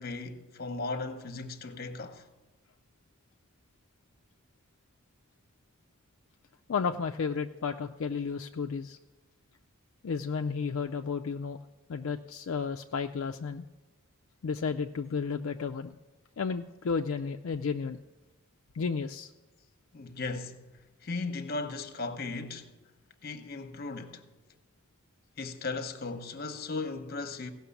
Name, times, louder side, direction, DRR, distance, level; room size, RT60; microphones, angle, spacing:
voice 1, 0.0-2.2 19.9-20.6 21.0-22.7 23.2-24.2 25.4-27.5, left 3 dB, 45° left, 0.9 m, -36 dB
voice 2, 6.7-9.0 10.0-11.6 11.9-13.6 14.4-15.9 16.4-18.0 18.7-19.3, left 5 dB, 65° left, 0.4 m, -32 dB
16.5 x 5.9 x 7.1 m
head